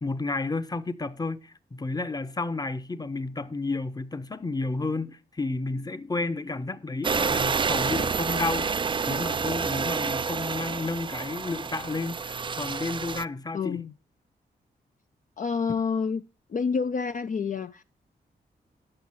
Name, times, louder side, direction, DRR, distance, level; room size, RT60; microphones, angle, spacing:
voice 1, 0.0-8.7 9.1-13.8 15.7-15.8, left 3 dB, 20° left, 0.8 m, -31 dB
sound 1, 7.0-13.2, right 5 dB, 25° right, 0.3 m, -28 dB
voice 2, 13.5-13.9 15.4-16.2 16.5-17.8, left 5 dB, 45° left, 0.5 m, -28 dB
8.9 x 5.9 x 5.8 m
supercardioid pair, 45°, 19 cm